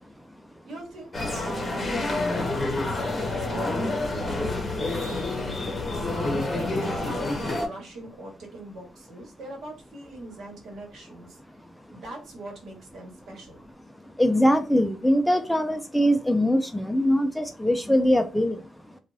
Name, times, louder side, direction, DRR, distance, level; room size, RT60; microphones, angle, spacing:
voice 1, 0.6-5.8 6.2-11.4 11.9-13.6, right 1 dB, 70° right, 1 dB, 1.2 m, -41 dB
sound 1, 1.1-7.7, left 2 dB, 25° left, 0.8 m, -28 dB
voice 2, 14.0-19.0, equal, 5° left, 7 dB, 0.3 m, -22 dB
2.5 x 2.3 x 3.1 m, 0.32 s
cardioid pair, 120°, 0 cm